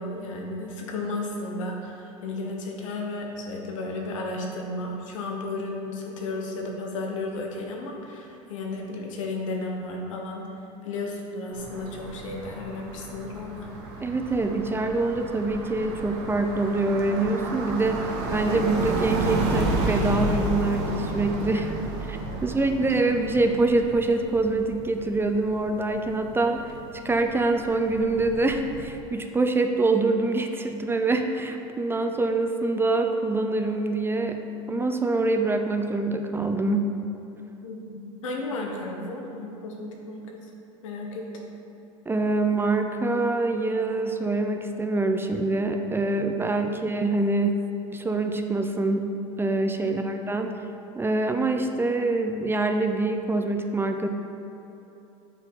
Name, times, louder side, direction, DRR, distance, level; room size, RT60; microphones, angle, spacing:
voice 1, 0.0-10.5 10.8-13.7 21.4-21.9 37.6-40.5 40.8-41.5 49.8-49.9, left 2 dB, 85° left, 0 dB, 1.2 m, -34 dB
sound 1, 11.5-28.8, right 2 dB, 70° right, 1.2 m, -32 dB
voice 2, 14.0-21.7 22.1-26.6 27.0-34.4 34.7-36.9 42.1-47.6 47.9-49.1 49.4-50.5 50.9-54.1, right 2 dB, 15° right, 5 dB, 0.5 m, -25 dB
7.2 x 4.2 x 5.5 m, 3.0 s
supercardioid pair, 95°, 16 cm